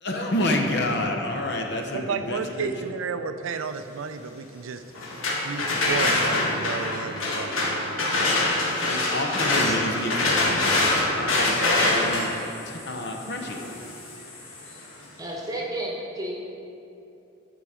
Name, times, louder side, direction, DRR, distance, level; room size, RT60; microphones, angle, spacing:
voice 1, 0.0-2.7 8.9-12.3 12.7-13.6, left 1 dB, 55° left, 2 dB, 0.8 m, -29 dB
voice 2, 1.9-4.8 5.4-8.0, right 5 dB, 75° right, 9 dB, 0.4 m, -32 dB
sound 1, 4.9-14.8, left 2 dB, 80° left, 1.4 m, -25 dB
voice 3, 15.2-16.3, right 1 dB, 15° right, -2 dB, 1.0 m, -31 dB
9.9 x 4.8 x 4.9 m, 2.8 s
head